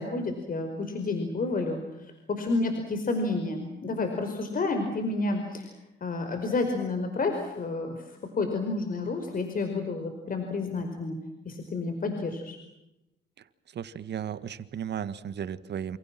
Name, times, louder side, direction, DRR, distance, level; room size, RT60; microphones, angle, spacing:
voice 1, 0.0-5.7 6.0-8.0 8.4-11.2 11.4-12.6, left 3 dB, 45° left, 5 dB, 5.0 m, -30 dB
voice 2, 13.7-16.0, right 8 dB, 60° right, 14 dB, 1.8 m, -35 dB
28.5 x 28.0 x 6.1 m, 0.91 s
cardioid pair, 90°, 20 cm